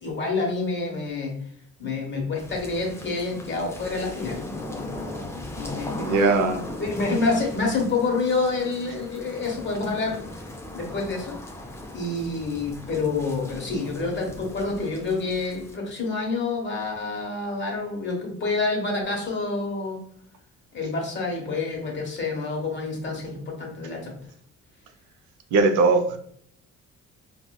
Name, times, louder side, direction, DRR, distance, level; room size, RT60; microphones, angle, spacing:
voice 1, 0.0-1.4 1.8-6.2 6.8-11.4 11.9-20.0 20.7-24.2, left 3 dB, 40° left, -1 dB, 1.1 m, -28 dB
sound 1, 2.4-15.8, left 1 dB, 10° left, 0.4 m, -39 dB
voice 2, 5.9-6.6 25.5-26.2, right 3 dB, 75° right, 6 dB, 0.5 m, -20 dB
4.1 x 2.2 x 2.2 m, 0.64 s
cardioid pair, 90°, 30 cm